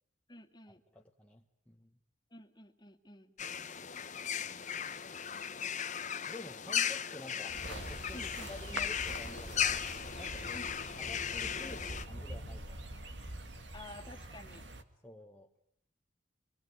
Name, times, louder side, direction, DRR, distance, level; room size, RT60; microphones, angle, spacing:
voice 1, 0.3-0.8 2.3-3.3 8.1-8.5 10.5-11.0 13.7-14.7, left 1 dB, 20° left, 3 dB, 2.3 m, -52 dB
voice 2, 0.9-2.0 6.3-9.9 10.2-10.6 11.0-12.8 15.0-15.5, left 1 dB, 5° left, -1 dB, 1.3 m, -50 dB
sound 1, 3.4-12.0, left 8 dB, 40° left, 1.1 m, -37 dB
sound 2, 7.5-14.8, right 1 dB, 65° right, 2.2 m, -44 dB
26.5 x 22.0 x 9.3 m, 0.72 s
head